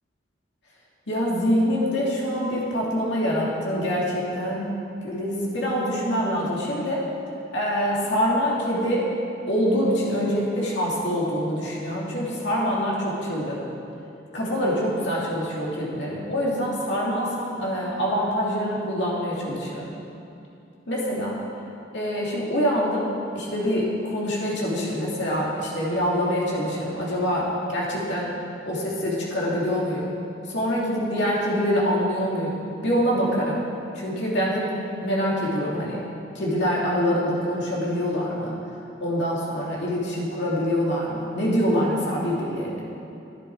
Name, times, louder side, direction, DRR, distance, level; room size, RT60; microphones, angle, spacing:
voice 1, 1.1-4.7 5.0-7.0 7.5-9.1 9.5-13.6 14.3-19.9 20.9-21.4 21.9-23.1 23.3-28.3 28.7-30.1 30.5-33.6 33.9-34.7 35.0-36.0 36.3-38.5 39.0-42.8, equal, 65° left, -5 dB, 2.5 m, -25 dB
11.0 x 9.7 x 4.7 m, 2.7 s
head